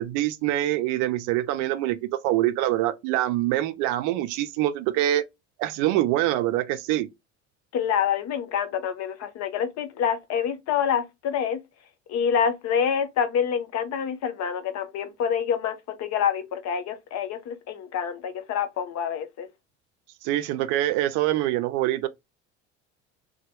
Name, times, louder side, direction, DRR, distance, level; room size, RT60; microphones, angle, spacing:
voice 1, 0.0-5.3 5.6-7.1 20.2-22.1, right 14 dB, 60° right, 0.5 m, -25 dB
voice 2, 7.7-11.6 12.1-19.5, left 8 dB, 50° left, 0.7 m, -27 dB
2.9 x 2.2 x 2.7 m
hypercardioid pair, 70°, 34 cm